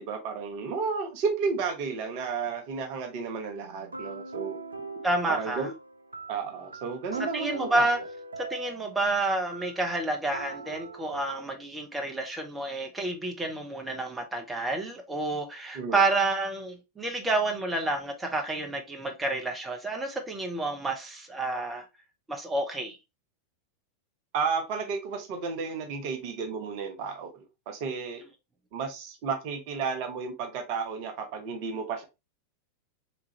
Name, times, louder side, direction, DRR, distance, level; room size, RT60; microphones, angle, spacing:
voice 1, 0.1-4.6 5.3-5.7 6.3-7.9 15.7-16.0 24.3-28.2 28.7-32.0, right 5 dB, 45° right, 0.7 m, -32 dB
sound 1, 3.6-11.5, right 3 dB, 75° right, 0.3 m, -42 dB
voice 2, 5.0-5.7 7.2-8.0 8.4-21.9 22.3-23.0, right 2 dB, 10° right, 0.7 m, -29 dB
3.7 x 3.0 x 2.8 m
figure-of-eight pair, 90°, 0 cm